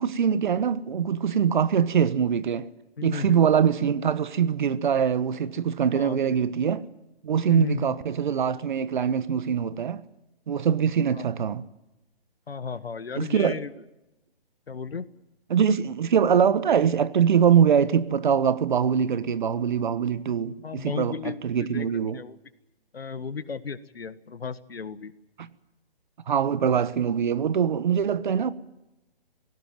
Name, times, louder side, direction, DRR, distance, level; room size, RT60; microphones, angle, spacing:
voice 1, 0.0-2.7 3.0-6.9 7.2-10.0 10.5-11.6 13.1-13.6 15.5-22.2 25.4-25.5 26.3-28.5, right 7 dB, 50° right, 1.3 m, -23 dB
voice 2, 3.0-3.6 5.9-6.2 7.5-7.9 11.1-11.3 12.5-13.7 14.7-15.1 20.6-21.9 22.1-22.4 22.9-25.1, left 5 dB, 75° left, 1.6 m, -34 dB
20.5 x 17.5 x 9.3 m
figure-of-eight pair, 145°, 30 cm